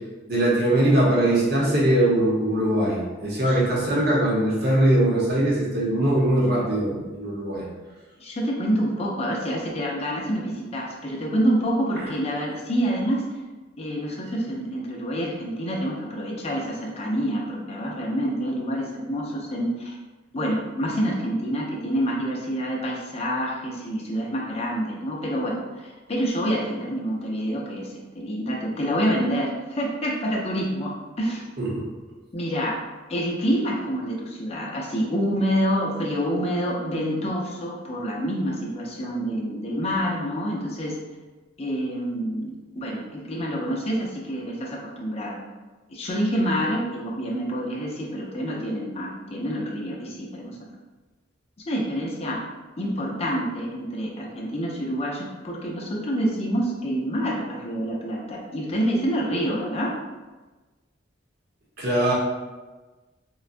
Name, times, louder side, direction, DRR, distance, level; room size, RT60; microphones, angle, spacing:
voice 1, 0.3-7.6 12.0-12.1 31.6-31.8 61.8-62.1, right 1 dB, 55° right, -5 dB, 0.9 m, -21 dB
voice 2, 8.2-13.2 13.8-20.0 20.3-31.5 32.3-32.8 33.1-41.0 41.6-45.4 45.9-50.7 51.6-52.4 52.8-59.9, equal, 35° left, -2 dB, 0.5 m, -27 dB
3.8 x 2.2 x 2.5 m, 1.2 s
head